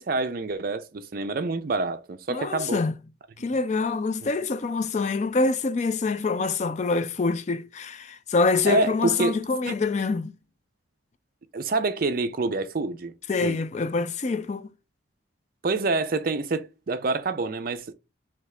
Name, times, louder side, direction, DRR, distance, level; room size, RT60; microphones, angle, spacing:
voice 1, 0.0-2.8 4.2-4.3 8.7-9.4 9.7-9.8 11.5-13.1 13.4-13.6 15.6-17.9, right 3 dB, 45° right, 0.4 m, -27 dB
voice 2, 2.3-3.0 3.4-10.3 13.3-14.7, left 4 dB, 35° left, 0.4 m, -25 dB
3.4 x 3.1 x 3.7 m
head